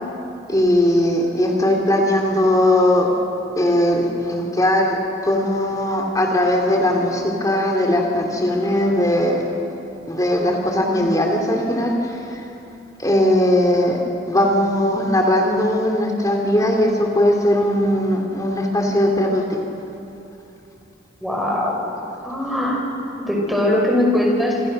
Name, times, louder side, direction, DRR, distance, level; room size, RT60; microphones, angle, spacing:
voice 1, 0.5-3.1 3.6-5.0 5.2-9.4 10.1-11.9 12.3-12.4 13.0-14.0 14.3-19.4, left 1 dB, 20° left, 1 dB, 2.8 m, -19 dB
voice 2, 21.2-21.8 22.2-22.8 23.3-24.7, left 1 dB, ahead, -2 dB, 5.9 m, -20 dB
28.0 x 25.5 x 6.6 m, 2.8 s
head